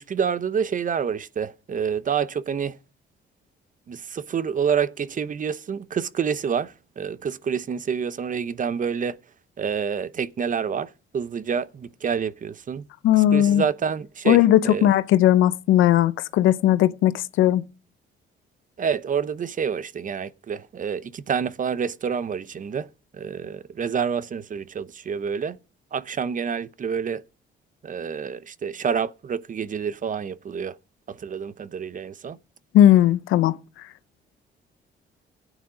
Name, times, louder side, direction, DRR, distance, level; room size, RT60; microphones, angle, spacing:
voice 1, 0.0-2.8 3.9-9.2 9.6-12.9 13.1-14.4 14.6-14.9 18.8-22.9 23.1-25.6 25.9-27.2 27.8-30.8 31.1-32.4, right 7 dB, 40° right, 0.7 m, -28 dB
voice 2, 13.0-13.6 14.3-17.6 32.7-33.6, left 12 dB, 90° left, 0.7 m, -17 dB
15.5 x 9.2 x 5.0 m
cardioid pair, 90°, 20 cm